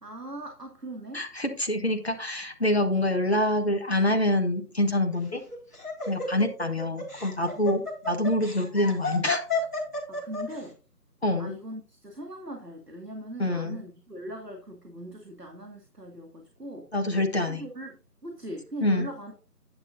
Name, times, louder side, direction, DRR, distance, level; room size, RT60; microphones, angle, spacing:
voice 1, 0.0-1.3 7.6-7.8 10.1-10.8 11.4-16.9 17.5-19.5, right 1 dB, 85° right, 2 dB, 2.3 m, -40 dB
voice 2, 1.1-5.4 6.1-9.4 11.2-11.5 13.4-13.8 16.9-17.6 18.8-19.1, left 1 dB, 40° left, 4 dB, 1.4 m, -26 dB
Laughter, 5.1-10.6, left 3 dB, 10° left, 2.1 m, -32 dB
10.5 x 9.6 x 2.6 m, 0.35 s
figure-of-eight pair, 170°, 47 cm